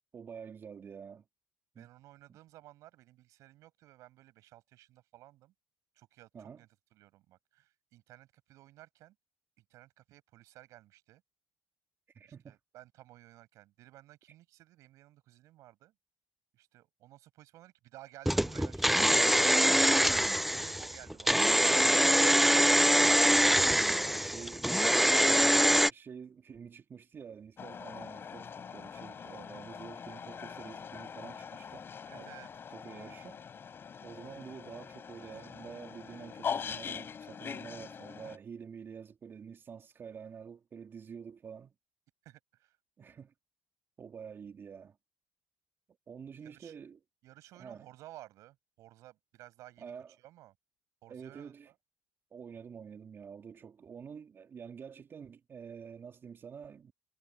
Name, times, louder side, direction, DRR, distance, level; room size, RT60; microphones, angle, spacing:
voice 1, 0.1-1.2 1.7-1.9 2.3-2.4 6.3-6.6 12.1-12.6 22.4-22.9 23.9-31.9 32.1-32.3 32.7-33.4 34.0-41.7 43.0-43.3 44.0-45.0 46.1-47.0 47.6-47.9 49.8-50.1 51.1-51.7 52.3-56.9, right 7 dB, 40° right, 2.9 m, -48 dB
voice 2, 1.8-5.5 6.0-9.1 9.6-11.2 12.2-15.9 16.5-21.9 22.2-22.5 32.1-32.5 42.2-42.8 46.4-46.8 47.2-49.9 50.2-50.5 51.0-51.7, right 15 dB, 70° right, 6.5 m, -56 dB
sound 1, 18.3-25.9, equal, 5° right, 0.5 m, -24 dB
sound 2, 27.6-38.4, left 7 dB, 45° left, 4.2 m, -43 dB
supercardioid pair, 70°, 6 cm